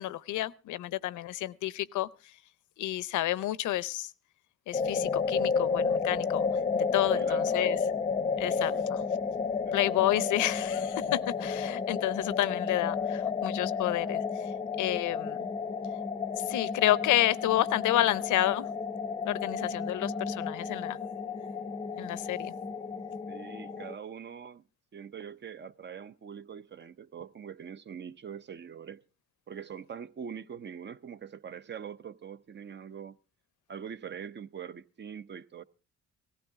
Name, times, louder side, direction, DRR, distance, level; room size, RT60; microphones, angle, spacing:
voice 1, 0.0-2.1 2.8-4.1 4.7-6.5 6.7-7.8 8.4-9.0 9.7-14.2 14.8-15.5 16.4-18.7 19.2-21.0 22.0-22.5, left 14 dB, 80° left, 0.6 m, -30 dB
sound 1, 4.7-23.9, left 5 dB, 20° left, 0.7 m, -32 dB
voice 2, 7.2-7.8 8.4-8.9 9.6-9.8 23.3-24.6 24.9-29.0 29.5-33.2 33.7-35.6, right 7 dB, 35° right, 0.6 m, -43 dB
18.0 x 15.5 x 3.5 m
cardioid pair, 90°, 30 cm